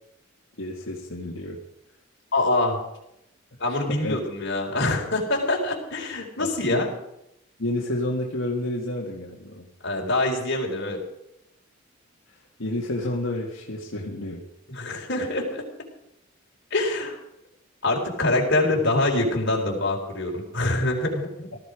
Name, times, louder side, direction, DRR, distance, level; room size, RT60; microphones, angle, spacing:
voice 1, 0.6-1.6 3.6-4.2 6.4-6.9 7.6-9.7 12.6-14.4, left 1 dB, 75° left, -3 dB, 2.0 m, -30 dB
voice 2, 2.3-2.8 3.6-6.9 9.8-11.0 14.7-15.6 16.7-17.2 17.8-21.5, left 2 dB, 60° left, 0 dB, 4.0 m, -25 dB
18.5 x 14.0 x 5.0 m, 0.84 s
head